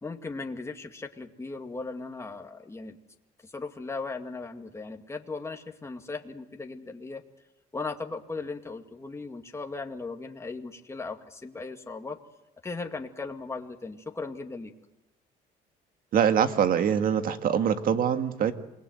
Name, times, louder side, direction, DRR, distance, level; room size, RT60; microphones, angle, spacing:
voice 1, 0.0-3.0 3.4-7.2 7.7-12.2 12.6-14.7, left 3 dB, 15° left, 4 dB, 2.2 m, -37 dB
voice 2, 16.1-18.5, right 8 dB, 55° right, 8 dB, 2.0 m, -24 dB
28.0 x 20.0 x 7.9 m, 0.93 s
cardioid pair, 110°, 17 cm